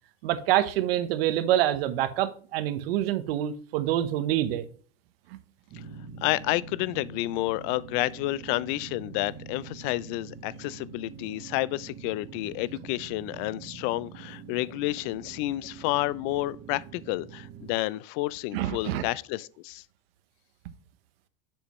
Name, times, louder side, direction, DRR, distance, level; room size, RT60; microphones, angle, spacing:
voice 1, 0.2-4.7 18.5-19.0, right 12 dB, 80° right, 1.0 m, -26 dB
sound 1, 5.7-17.8, right 6 dB, 45° right, 1.4 m, -45 dB
voice 2, 6.2-19.8, left 18 dB, 55° left, 0.4 m, -30 dB
7.2 x 6.8 x 3.0 m
supercardioid pair, 130°, 30 cm